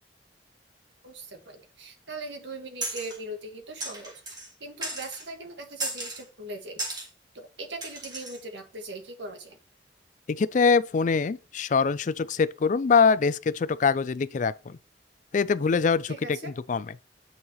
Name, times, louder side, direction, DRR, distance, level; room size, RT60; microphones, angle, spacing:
voice 1, 1.0-7.1 7.3-9.6 16.1-16.5, right 2 dB, 80° right, 1.7 m, -40 dB
sound 1, 2.8-3.2 3.8-4.5 4.8-5.3 5.8-6.2 6.8-7.1 7.8-8.4, right 1 dB, 25° right, 2.3 m, -35 dB
voice 2, 10.3-14.8 15.3-16.9, left 5 dB, 45° left, 0.4 m, -24 dB
9.6 x 5.6 x 3.0 m
head